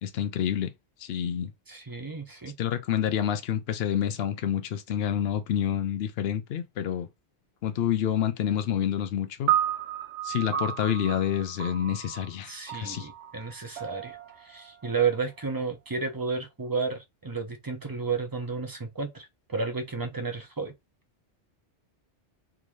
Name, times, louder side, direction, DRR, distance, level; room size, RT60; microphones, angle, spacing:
voice 1, 0.0-0.7 1.0-1.5 2.6-7.1 7.6-9.5 10.2-13.1, left 10 dB, 65° left, 0.8 m, -28 dB
voice 2, 1.7-2.6 12.5-20.7, right 5 dB, 25° right, 0.6 m, -32 dB
sound 1, 9.5-15.9, right 11 dB, 80° right, 0.9 m, -33 dB
3.6 x 2.6 x 3.1 m
omnidirectional pair, 1.2 m